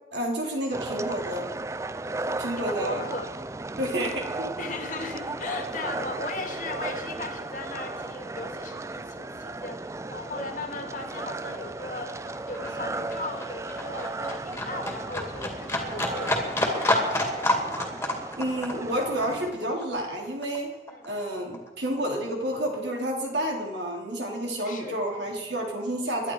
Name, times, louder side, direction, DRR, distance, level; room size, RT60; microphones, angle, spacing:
voice 1, 0.1-1.5 2.3-3.1 3.8-4.5 18.4-20.7 21.1-26.3, right 1 dB, 80° right, 1 dB, 3.5 m, -30 dB
sound 1, 0.7-19.5, right 2 dB, 15° right, 0.4 m, -35 dB
voice 2, 2.6-3.3 4.6-17.1 20.9-21.1 24.6-25.0, left 2 dB, 45° left, 5 dB, 2.1 m, -37 dB
Livestock farm animals working animals, 9.8-10.0 10.2-21.2 21.5-22.6 22.9-23.0, left 1 dB, 15° left, 2.4 m, -30 dB
22.5 x 11.0 x 4.8 m, 1.2 s
head